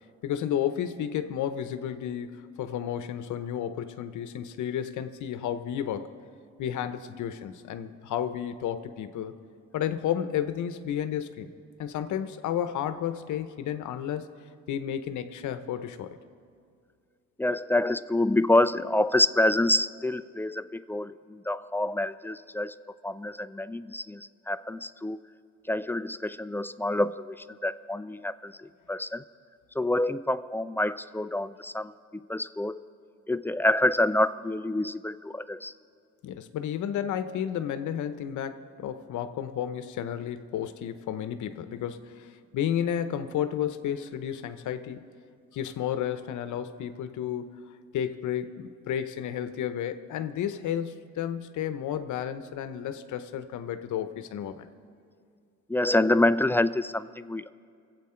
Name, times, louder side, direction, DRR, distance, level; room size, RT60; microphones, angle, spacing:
voice 1, 0.2-6.1 6.6-9.4 9.7-11.5 11.8-14.3 14.7-16.2 36.2-45.1 45.5-47.7 47.9-54.7, left 9 dB, 75° left, 11 dB, 0.8 m, -32 dB
voice 2, 17.4-22.7 23.0-25.2 25.7-29.2 29.7-32.8 33.3-35.7 55.7-57.5, left 1 dB, 5° left, 14 dB, 0.3 m, -27 dB
24.0 x 8.3 x 4.4 m, 2.3 s
cardioid pair, 90°, 30 cm